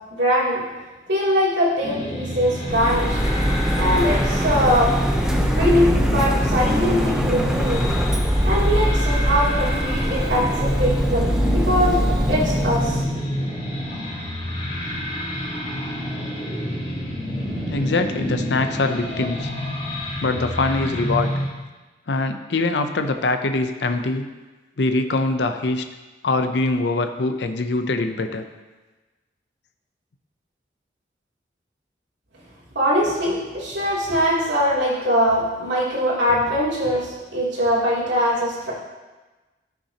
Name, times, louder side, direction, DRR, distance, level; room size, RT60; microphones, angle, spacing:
voice 1, 0.1-0.6 1.1-3.2 3.7-4.9 5.5-7.9 8.4-12.0 12.3-13.0 32.7-38.7, equal, 85° right, -7 dB, 2.9 m, -22 dB
sound 1, 1.8-21.5, equal, 30° left, 2.3 m, -28 dB
Printer, 2.7-13.0, equal, 5° right, 0.6 m, -22 dB
voice 2, 17.7-19.5 20.2-21.3 22.1-24.3 24.8-25.8 26.2-28.4, left 2 dB, 75° left, 7 dB, 0.6 m, -23 dB
14.0 x 6.0 x 2.9 m, 1.2 s
head